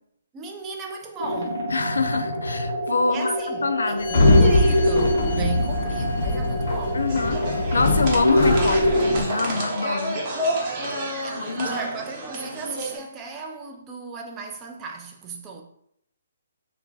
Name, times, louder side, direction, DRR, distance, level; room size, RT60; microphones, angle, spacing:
voice 1, 0.3-1.7 3.1-7.1 11.2-15.6, right 5 dB, 20° right, 0.3 m, -35 dB
sound 1, 1.2-9.2, equal, 90° right, 1.0 m, -25 dB
voice 2, 1.7-3.4 3.6-4.1 4.3-4.4 6.9-10.2 11.4-11.7, left 4 dB, 85° left, 0.3 m, -25 dB
Sliding door, 4.0-9.2, left 2 dB, 55° left, 0.7 m, -22 dB
sound 2, 7.1-13.0, right 1 dB, 35° right, 0.8 m, -30 dB
2.4 x 2.2 x 3.9 m
hypercardioid pair, 150°, 0 cm